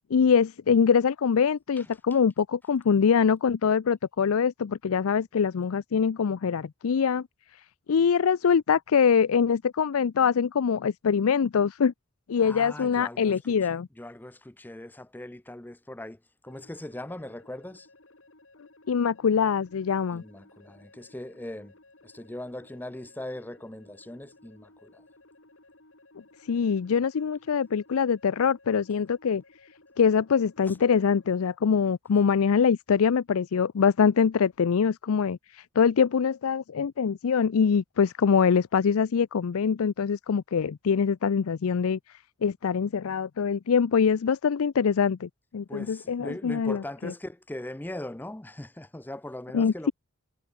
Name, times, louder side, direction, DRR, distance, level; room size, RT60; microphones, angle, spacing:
voice 1, 0.1-7.2 7.9-11.9 12.3-13.9 18.9-20.2 26.5-29.4 30.0-42.0 42.4-47.1 49.5-49.9, left 6 dB, 90° left, 0.5 m, -24 dB
voice 2, 12.4-13.3 14.0-16.2 16.4-17.9 20.1-21.7 22.0-24.9 30.7-30.8 45.7-49.9, left 1 dB, 10° left, 0.5 m, -40 dB
sound 1, 16.5-31.5, left 2 dB, 70° left, 5.7 m, -57 dB
head